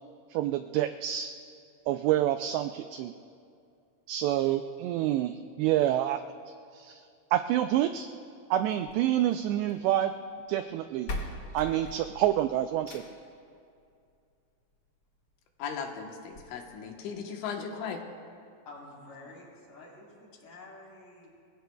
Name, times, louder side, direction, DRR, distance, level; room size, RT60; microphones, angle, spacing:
voice 1, 0.3-1.3 1.9-3.1 4.1-6.2 6.7-7.0 7.3-8.1 8.5-10.1 10.5-11.1 11.5-13.0, right 12 dB, 90° right, 8 dB, 2.4 m, -27 dB
sound 1, 8.7-9.9 10.7-10.8 11.1-13.3 14.7-14.8 15.3-15.4 15.6-15.7 16.3-16.4, left 1 dB, 60° left, 1.0 m, -40 dB
voice 2, 15.6-18.0, left 6 dB, 80° left, 2 dB, 3.6 m, -37 dB
voice 3, 18.6-21.3, left 2 dB, 45° left, -4 dB, 5.0 m, -49 dB
27.5 x 22.0 x 2.3 m, 2.4 s
omnidirectional pair, 5.4 m